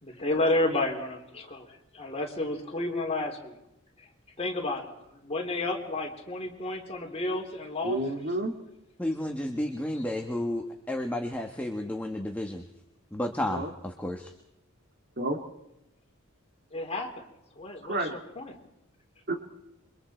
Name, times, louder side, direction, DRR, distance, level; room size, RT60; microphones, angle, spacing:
voice 1, 0.0-3.6 4.4-8.0 16.7-17.2 17.6-18.6, left 2 dB, 30° left, 1 dB, 3.7 m, -31 dB
voice 2, 7.8-8.6 13.5-13.7 15.2-15.4 17.8-18.1 19.3-19.4, right 1 dB, 50° right, 5 dB, 2.6 m, -30 dB
voice 3, 9.0-12.6 13.1-14.3, left 1 dB, 5° left, 2 dB, 1.5 m, -32 dB
28.5 x 24.5 x 4.5 m, 0.86 s
head